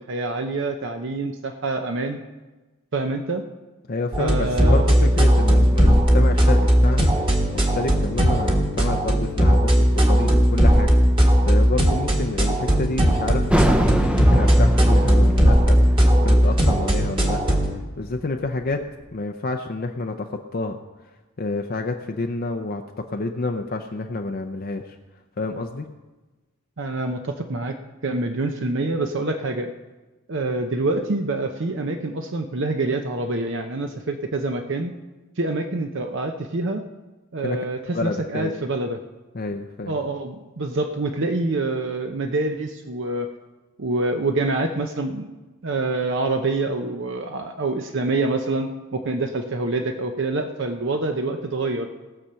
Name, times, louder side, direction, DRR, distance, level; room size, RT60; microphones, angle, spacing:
voice 1, 0.0-2.2 2.9-3.4 4.2-4.9 26.8-27.8 28.0-29.7 30.3-34.9 35.4-36.8 37.3-39.0 39.9-43.3 43.8-45.3 45.6-51.9, right 2 dB, 60° right, 5 dB, 0.7 m, -26 dB
voice 2, 3.9-10.9 11.5-18.8 19.1-20.8 21.4-25.0 25.4-25.9 37.4-37.6 37.9-38.5 39.3-39.9, left 3 dB, 45° left, 4 dB, 0.6 m, -29 dB
sound 1, 4.1-17.7, equal, 25° right, 1.5 m, -17 dB
sound 2, 13.5-18.8, equal, 5° right, 0.6 m, -25 dB
18.5 x 6.8 x 5.7 m, 1.2 s
head